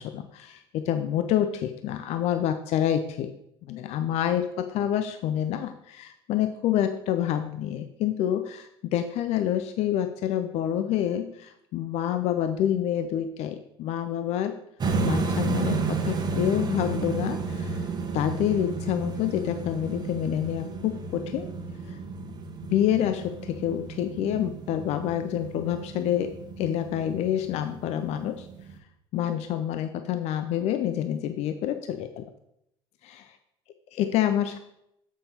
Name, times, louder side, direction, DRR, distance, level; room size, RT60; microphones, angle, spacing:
voice 1, 0.0-3.3 3.7-14.6 15.0-17.9 18.1-21.5 21.9-22.0 22.7-28.5 29.1-32.2 33.0-33.4 33.9-34.6, left 10 dB, 55° left, 9 dB, 0.5 m, -27 dB
sound 1, 14.8-28.8, right 4 dB, 35° right, 1.1 m, -32 dB
6.9 x 5.5 x 4.3 m, 0.78 s
hypercardioid pair, 65°, 13 cm